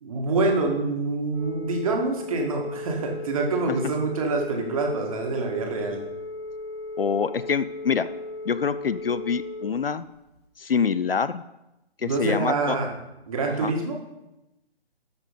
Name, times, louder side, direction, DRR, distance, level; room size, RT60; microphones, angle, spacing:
voice 1, 0.0-6.0 12.0-12.9 13.3-14.0, right 3 dB, 35° right, 1 dB, 1.8 m, -26 dB
Telephone, 1.3-9.6, left 2 dB, 40° left, 2.7 m, -36 dB
voice 2, 7.0-8.1 8.5-10.0 10.6-11.4 12.0-12.8 13.6-13.7, left 6 dB, 60° left, 15 dB, 0.6 m, -25 dB
13.0 x 5.4 x 5.1 m, 0.93 s
figure-of-eight pair, 145°, 32 cm